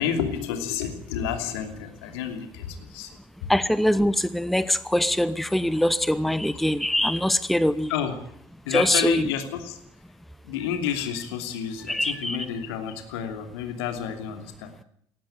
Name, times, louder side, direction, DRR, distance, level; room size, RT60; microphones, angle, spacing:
voice 1, 0.0-3.1 7.9-8.1 8.6-9.8 10.4-14.7, left 7 dB, 70° left, 6 dB, 2.9 m, -30 dB
voice 2, 3.5-7.9 8.7-9.3 11.9-12.4, left 1 dB, ahead, 17 dB, 0.9 m, -23 dB
18.5 x 15.5 x 9.6 m, 0.67 s
figure-of-eight pair, 55°, 14 cm